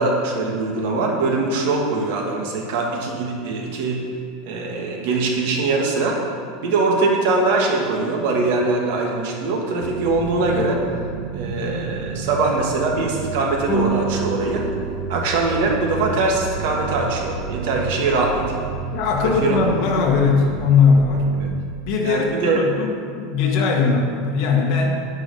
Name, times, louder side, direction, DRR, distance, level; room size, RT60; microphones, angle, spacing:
voice 1, 0.0-4.0 4.5-6.2 6.6-10.8 11.3-14.7 15.1-18.6 19.4-19.6 21.4-21.5 22.0-22.6, right 3 dB, 60° right, 0 dB, 2.1 m, -22 dB
sound 1, 9.8-21.8, right 6 dB, 80° right, 0.6 m, -31 dB
sound 2, 13.7-16.2, right 2 dB, 20° left, 1.1 m, -28 dB
voice 2, 18.9-21.2 21.8-25.0, left 5 dB, 45° left, 0 dB, 1.8 m, -19 dB
9.5 x 9.0 x 5.7 m, 2.2 s
supercardioid pair, 170°, 0 cm